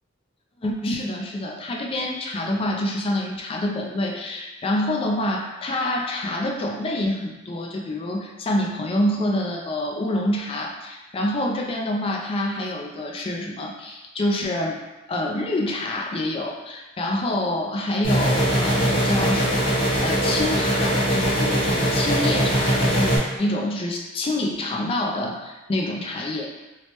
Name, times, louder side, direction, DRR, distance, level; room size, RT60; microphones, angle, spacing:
voice 1, 0.6-14.8 15.1-26.5, left 1 dB, 30° left, 0 dB, 0.3 m, -27 dB
sound 1, 18.0-23.2, right 1 dB, 45° left, 1.2 m, -21 dB
2.9 x 2.1 x 3.0 m, 1.1 s
head